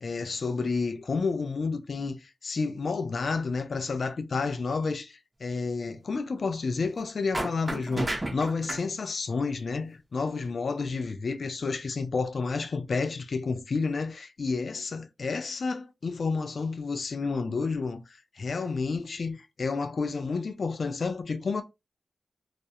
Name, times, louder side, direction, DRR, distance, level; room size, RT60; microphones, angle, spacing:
voice 1, 0.0-21.6, left 4 dB, 70° left, 0.4 m, -30 dB
sound 1, 7.3-8.8, right 1 dB, 30° right, 0.8 m, -31 dB
2.4 x 2.0 x 2.7 m
cardioid pair, 45°, 0 cm